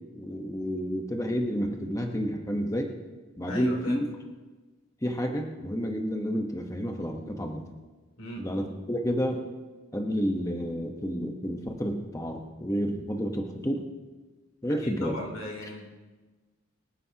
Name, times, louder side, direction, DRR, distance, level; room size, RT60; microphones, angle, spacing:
voice 1, 0.1-2.9 3.4-4.1 5.0-7.6 8.4-9.4 9.9-13.8 14.6-15.2, equal, 15° left, 2 dB, 1.0 m, -30 dB
voice 2, 3.5-4.0 8.2-8.5 14.8-15.8, left 1 dB, 90° left, -1 dB, 3.1 m, -38 dB
25.0 x 10.5 x 2.9 m, 1.3 s
head